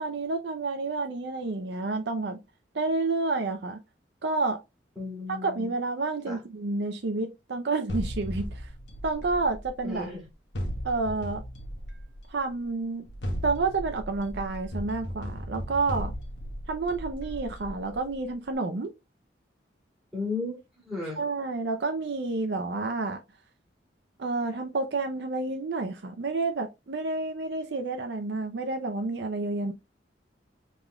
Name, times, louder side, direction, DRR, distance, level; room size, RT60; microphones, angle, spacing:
voice 1, 0.0-2.4 2.7-3.8 4.2-4.6 5.3-8.5 9.0-10.0 10.8-11.4 12.3-13.1 13.4-16.1 16.7-18.9 21.2-23.2 24.2-29.7, right 3 dB, 65° right, 0.5 m, -29 dB
voice 2, 5.0-5.7 6.2-6.4 9.8-10.2 20.1-20.6 20.9-21.2, left 3 dB, ahead, 2.6 m, -34 dB
sound 1, 7.9-10.0 10.5-12.4 13.0-18.1, equal, 70° left, 1.2 m, -36 dB
5.3 x 3.7 x 2.2 m
head